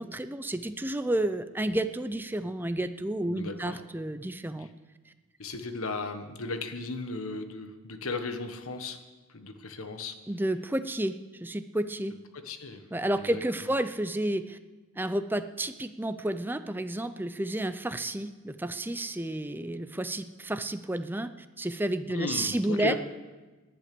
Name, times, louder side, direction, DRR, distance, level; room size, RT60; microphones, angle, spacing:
voice 1, 0.0-4.7 10.3-12.2 12.9-14.6 15.0-21.3 21.6-22.9, right 1 dB, 10° right, 10 dB, 0.6 m, -31 dB
voice 2, 3.3-3.8 4.6-4.7 5.4-9.0 9.3-10.2 12.3-13.4 22.1-23.0, left 3 dB, 70° left, 8 dB, 1.3 m, -36 dB
19.0 x 10.5 x 6.8 m, 1.2 s
head